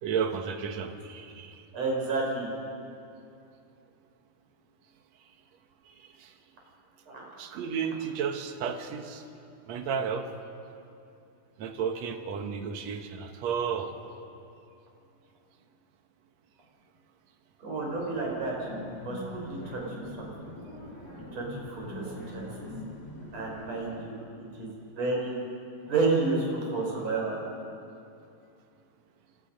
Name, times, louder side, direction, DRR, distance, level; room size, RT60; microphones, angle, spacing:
voice 1, 0.0-1.6 5.8-6.3 7.4-9.2 9.7-10.3 11.6-13.9, right 6 dB, 75° right, 5 dB, 1.6 m, -33 dB
voice 2, 1.7-2.5 7.1-7.2 17.6-18.7 19.0-20.3 21.3-22.7 23.3-25.4 25.9-27.4, right 3 dB, 40° right, -2 dB, 6.3 m, -31 dB
sound 1, 17.7-24.0, left 2 dB, 40° left, 6.5 m, -43 dB
29.5 x 26.0 x 5.4 m, 2.6 s
omnidirectional pair, 4.9 m